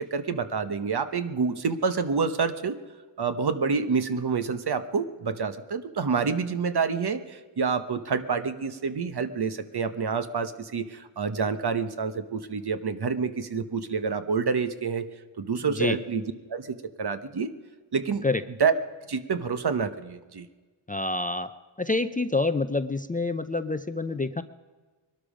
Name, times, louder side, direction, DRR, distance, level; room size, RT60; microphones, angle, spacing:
voice 1, 0.0-2.8 3.2-15.1 15.4-16.2 16.5-17.5 17.9-18.2 18.6-18.7 19.1-20.5, right 5 dB, 50° right, 10 dB, 1.1 m, -28 dB
voice 2, 15.6-16.0 18.2-18.4 20.9-21.5 21.8-24.4, left 2 dB, 15° left, 12 dB, 0.5 m, -27 dB
21.0 x 12.5 x 5.1 m, 1.4 s
wide cardioid pair, 90°, 49 cm